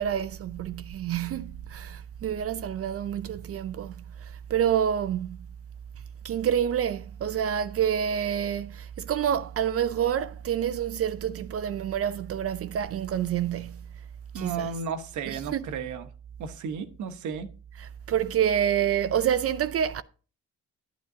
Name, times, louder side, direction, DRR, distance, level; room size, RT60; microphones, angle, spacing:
voice 1, 0.0-5.4 6.2-13.8 14.3-14.7 15.3-15.7 17.7-20.0, right 9 dB, 50° right, 0.5 m, -28 dB
voice 2, 14.3-16.1 16.4-17.5, right 6 dB, 75° right, 1.1 m, -34 dB
10.5 x 9.3 x 2.7 m
cardioid pair, 90°, 30 cm